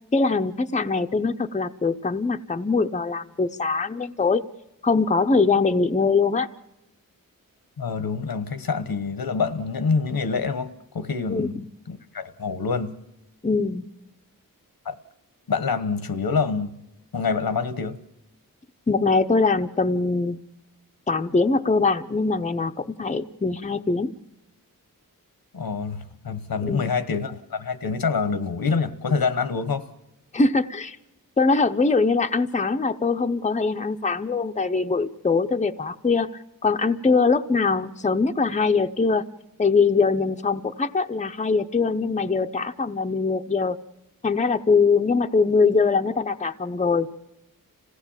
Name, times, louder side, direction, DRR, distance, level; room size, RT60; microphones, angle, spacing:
voice 1, 0.1-4.4 4.8-6.5 11.3-11.6 13.4-13.9 18.9-20.4 21.1-24.1 26.6-26.9 30.3-31.0 31.4-36.3 36.6-39.2 39.6-43.8 44.2-47.1, left 4 dB, 20° left, 0.7 m, -22 dB
voice 2, 7.8-11.6 11.9-12.9 14.8-15.0 15.5-16.8 17.1-18.0 25.5-29.8, left 5 dB, 85° left, 1.2 m, -26 dB
26.0 x 16.5 x 7.3 m
wide cardioid pair, 75°, 35 cm